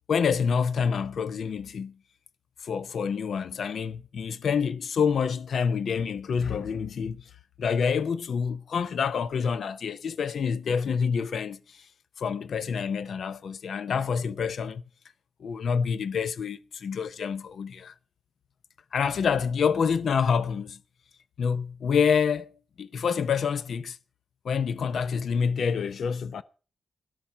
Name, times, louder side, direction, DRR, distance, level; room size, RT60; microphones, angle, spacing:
voice 1, 0.1-1.9 2.6-7.2 7.6-11.9 12.2-14.8 15.4-17.9 18.9-20.8 21.4-22.5 22.8-24.0 24.4-26.4, left 6 dB, 70° left, 0.6 m, -27 dB
13.0 x 12.0 x 5.6 m
wide cardioid pair, 150°, 0 cm